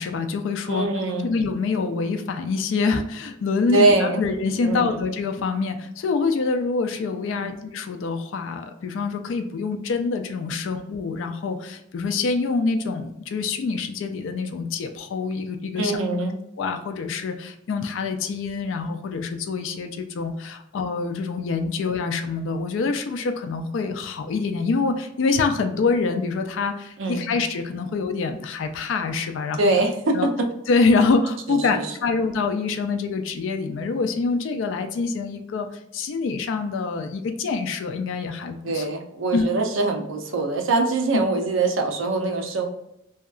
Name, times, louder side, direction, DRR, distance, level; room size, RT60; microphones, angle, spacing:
voice 1, 0.0-0.9 1.2-16.0 16.6-29.7 30.1-30.3 30.7-35.7 35.9-38.9 39.3-39.5 41.1-41.2, left 4 dB, 70° left, 6 dB, 0.3 m, -25 dB
voice 2, 0.7-1.3 3.7-4.2 4.6-5.0 7.3-7.5 15.8-16.3 27.0-27.3 29.6-30.2 31.5-31.8 38.6-42.7, right 2 dB, 75° right, 3 dB, 0.5 m, -23 dB
2.7 x 2.3 x 2.3 m, 0.82 s
head